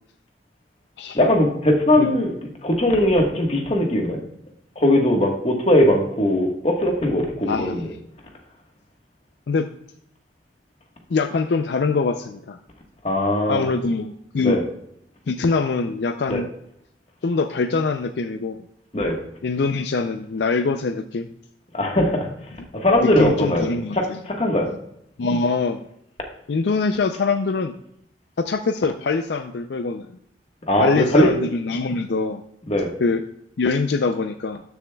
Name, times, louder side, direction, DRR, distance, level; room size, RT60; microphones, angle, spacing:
voice 1, 1.1-2.3 2.6-4.2 4.8-7.8 13.0-13.7 14.4-14.6 16.3-16.4 18.9-19.2 21.7-22.3 22.7-23.7 23.9-24.8 30.7-31.3 32.7-32.9, left 1 dB, 35° left, 1 dB, 1.4 m, -19 dB
voice 2, 7.5-8.0 9.5-9.7 11.1-12.6 13.5-14.6 15.3-16.5 17.2-18.7 19.4-21.3 23.0-24.2 25.2-25.8 26.5-27.7 28.4-30.1 30.8-32.4 33.0-33.2 33.6-34.6, left 4 dB, 70° left, 8 dB, 0.4 m, -23 dB
12.5 x 7.1 x 2.3 m, 0.74 s
head